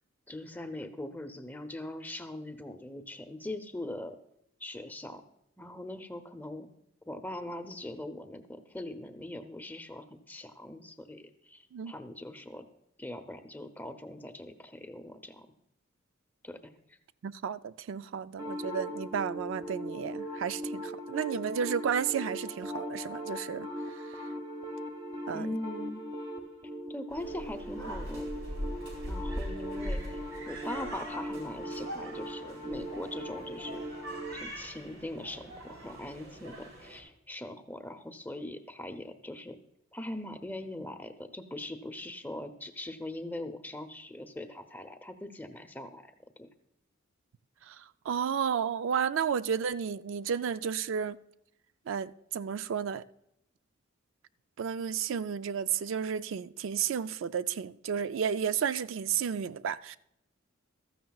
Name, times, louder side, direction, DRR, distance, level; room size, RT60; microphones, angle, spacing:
voice 1, 0.3-4.2 4.6-5.2 5.6-6.7 7.1-12.7 13.0-15.5 16.4-17.0 25.3-26.0 26.9-28.3 29.1-30.2 30.5-33.8 34.4-39.6 39.9-46.5, left 1 dB, 10° left, 0.7 m, -41 dB
voice 2, 17.2-24.2 25.3-25.5 47.6-51.2 51.9-53.0 54.6-60.0, right 7 dB, 65° right, 0.3 m, -32 dB
sound 1, 18.4-34.4, equal, 30° right, 1.2 m, -39 dB
sound 2, 27.1-37.0, equal, 85° right, 3.9 m, -41 dB
15.0 x 13.5 x 2.3 m
head